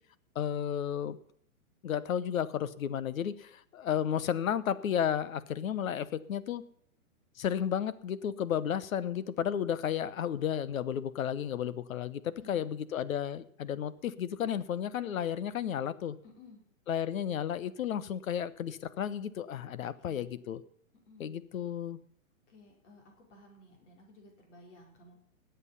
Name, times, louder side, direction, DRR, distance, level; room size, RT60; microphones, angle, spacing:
voice 1, 0.3-1.2 1.8-6.6 7.4-16.2 16.9-20.6 21.2-22.0, left 9 dB, 75° left, 16 dB, 1.1 m, -33 dB
voice 2, 12.4-12.7 16.2-16.6 19.8-20.4 21.1-21.3 22.5-25.2, left 1 dB, 55° left, 0 dB, 4.9 m, -56 dB
20.0 x 8.3 x 5.6 m, 0.65 s
hypercardioid pair, 150°, 42 cm